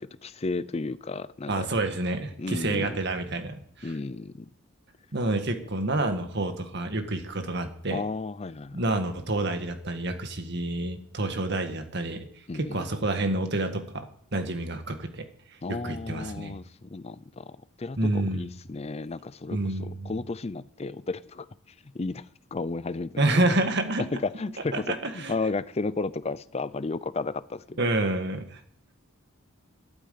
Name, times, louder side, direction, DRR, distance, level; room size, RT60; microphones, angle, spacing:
voice 1, 0.0-1.7 2.4-3.0 3.8-4.5 7.9-8.8 12.5-12.9 15.6-21.5 21.9-22.2 22.5-23.6 24.1-27.8, left 3 dB, 30° left, 0.5 m, -33 dB
voice 2, 1.5-3.9 5.1-8.0 8.7-12.3 12.5-14.1 14.3-15.2 15.8-16.5 18.0-18.5 19.5-20.1 23.2-24.0 24.7-25.3 27.8-28.6, right 2 dB, 55° right, 1.8 m, -28 dB
11.5 x 9.3 x 8.4 m
head